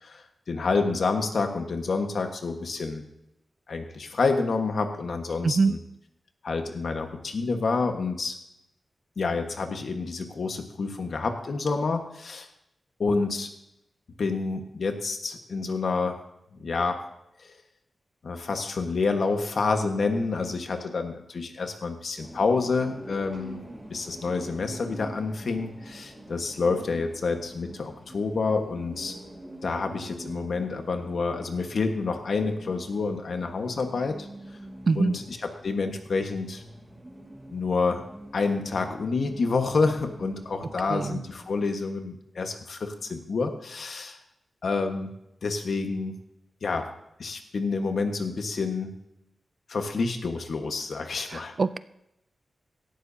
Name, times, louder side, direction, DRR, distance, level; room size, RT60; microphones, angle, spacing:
voice 1, 0.0-3.0 3.7-5.8 6.4-8.3 9.2-12.5 13.0-13.5 14.2-16.2 16.6-17.0 17.4-17.5 18.2-23.6 23.9-29.1 29.6-34.3 35.0-35.2 35.6-36.6 37.5-38.0 38.3-44.2 44.6-45.1 45.4-46.1 46.6-46.9 47.2-48.9 49.7-51.5, left 4 dB, 60° left, 5 dB, 1.4 m, -28 dB
voice 2, 5.4-5.7 34.9-35.2 40.9-41.2 51.3-51.8, right 4 dB, 45° right, 15 dB, 0.4 m, -24 dB
sound 1, 22.2-41.6, right 1 dB, ahead, 3.0 m, -45 dB
17.5 x 13.0 x 2.8 m, 0.82 s
wide cardioid pair, 145°, 0 cm